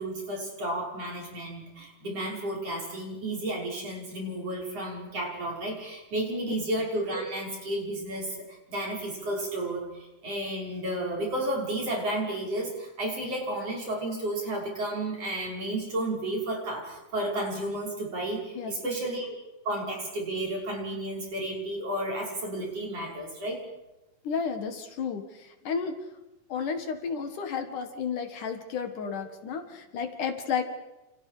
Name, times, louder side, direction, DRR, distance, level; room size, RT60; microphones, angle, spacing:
voice 1, 0.0-19.4 19.7-23.6, right 1 dB, 45° right, -1 dB, 7.0 m, -32 dB
voice 2, 18.6-19.0 24.2-26.0 26.5-30.6, left 6 dB, 65° left, 7 dB, 3.3 m, -32 dB
29.0 x 29.0 x 5.1 m, 1.0 s
omnidirectional pair, 4.0 m